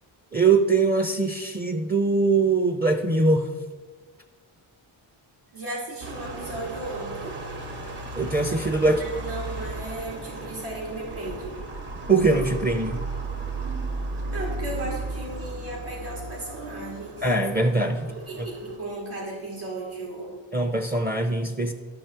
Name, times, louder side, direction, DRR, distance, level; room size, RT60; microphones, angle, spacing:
voice 1, 0.3-3.5 8.1-9.0 12.1-13.1 17.2-18.1 18.4-18.5 20.5-21.7, right 3 dB, 20° right, 6 dB, 0.6 m, -22 dB
voice 2, 5.5-7.4 9.0-11.6 14.3-17.2 18.1-20.3, right 2 dB, 80° right, -4 dB, 3.0 m, -35 dB
sound 1, 6.0-18.8, right 2 dB, 55° right, 1.4 m, -35 dB
12.5 x 6.2 x 4.5 m, 1.4 s
wide cardioid pair, 90°, 49 cm